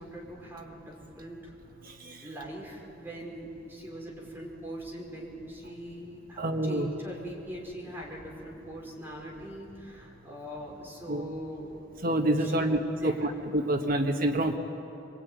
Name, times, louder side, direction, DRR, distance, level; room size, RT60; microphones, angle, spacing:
voice 1, 0.0-1.5 2.2-11.8 12.4-13.3, equal, 10° right, -3 dB, 5.3 m, -42 dB
voice 2, 1.8-2.2 6.4-6.9 11.1-11.2 12.0-14.6, right 1 dB, 50° right, 4 dB, 1.6 m, -27 dB
24.0 x 23.0 x 9.5 m, 2.9 s
head